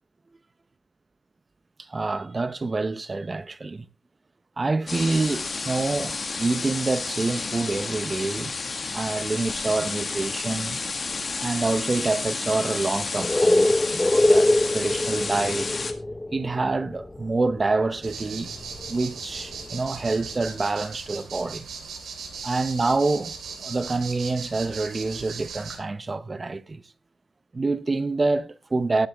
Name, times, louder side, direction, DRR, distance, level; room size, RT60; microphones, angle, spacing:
voice 1, 1.9-3.9 4.6-8.5 8.9-10.8 11.4-15.8 16.3-18.6 18.9-21.7 22.4-23.3 23.6-26.8 27.5-29.1, right 3 dB, 25° right, 0.7 m, -27 dB
sound 1, 4.9-15.9, left 4 dB, 35° left, 1.7 m, -31 dB
sound 2, 13.2-17.8 18.1-19.0 19.2-20.3, left 1 dB, 10° left, 0.5 m, -23 dB
sound 3, 18.0-25.8, right 5 dB, 70° right, 3.2 m, -38 dB
19.0 x 7.8 x 3.4 m
wide cardioid pair, 120°, 0 cm